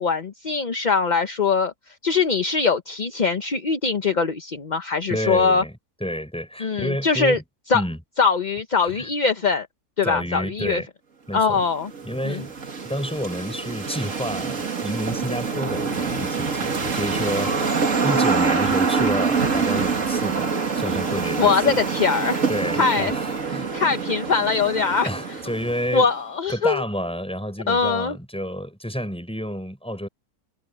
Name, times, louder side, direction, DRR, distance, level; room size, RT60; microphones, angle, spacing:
voice 1, 0.0-1.7 2.0-5.6 6.6-7.4 7.7-7.8 8.2-9.7 10.0-10.8 11.3-11.9 12.2-12.4 21.4-22.4 22.7-23.1 23.7-25.1 25.9-26.8 27.7-28.2, left 5 dB, 35° left, 0.8 m, -22 dB
voice 2, 5.1-7.4 7.7-8.0 8.8-9.1 10.0-10.9 11.3-11.6 12.0-12.5 12.8-23.7 25.0-26.1 26.5-30.1, equal, 5° left, 6.8 m, -30 dB
sound 1, 11.6-26.1, right 5 dB, 50° right, 2.4 m, -25 dB
omnidirectional pair, 1.7 m